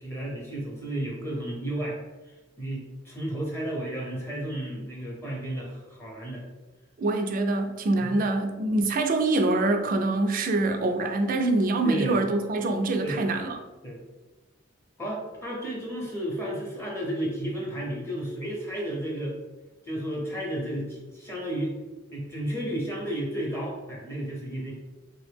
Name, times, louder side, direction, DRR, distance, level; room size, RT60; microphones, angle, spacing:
voice 1, 0.0-2.0 2.6-6.4 8.0-8.2 11.8-12.1 13.0-13.2 13.8-14.0 15.0-19.4 19.8-21.7 22.1-24.7, right 1 dB, 15° left, -4 dB, 0.7 m, -32 dB
voice 2, 7.0-13.6, right 2 dB, 45° right, 5 dB, 0.3 m, -25 dB
3.3 x 2.0 x 3.3 m, 1.2 s
head